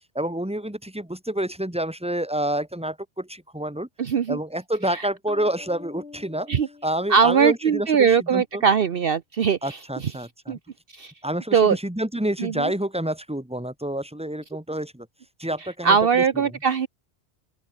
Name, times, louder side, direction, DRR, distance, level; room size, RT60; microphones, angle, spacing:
voice 1, 0.1-3.9 4.3-6.5 6.8-8.6 9.6-10.6 11.2-15.1 15.4-16.0, right 1 dB, 5° right, 2.5 m, -28 dB
voice 2, 4.0-4.4 4.9-5.0 6.5-6.7 7.1-10.1 10.5-10.6 10.9-11.1 11.5-11.8 12.4-12.7 15.8-16.9, right 6 dB, 55° right, 1.0 m, -21 dB
sound 1, 5.3-7.9, left 4 dB, 70° left, 2.2 m, -46 dB
open air
omnidirectional pair, 1.1 m